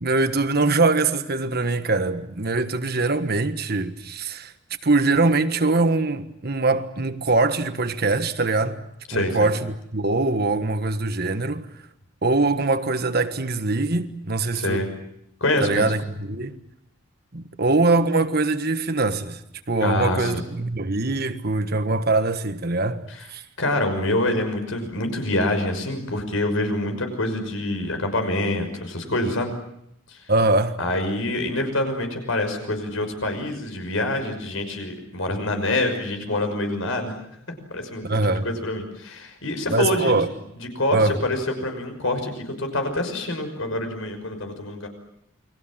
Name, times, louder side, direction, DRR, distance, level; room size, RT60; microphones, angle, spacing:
voice 1, 0.0-4.5 4.8-8.8 9.1-11.7 12.2-14.8 15.6-16.6 17.3-19.4 19.7-23.0 23.3-23.4 30.3-30.8 38.0-38.5 39.7-40.3 40.9-41.2, right 3 dB, 50° right, 1.5 m, -22 dB
voice 2, 9.1-9.5 14.5-14.9 15.4-15.9 19.8-20.4 23.1-23.3 23.6-29.5 30.1-30.2 30.8-37.2 37.7-40.2 40.6-44.9, left 1 dB, 70° left, 5.9 m, -26 dB
29.5 x 22.5 x 7.5 m
head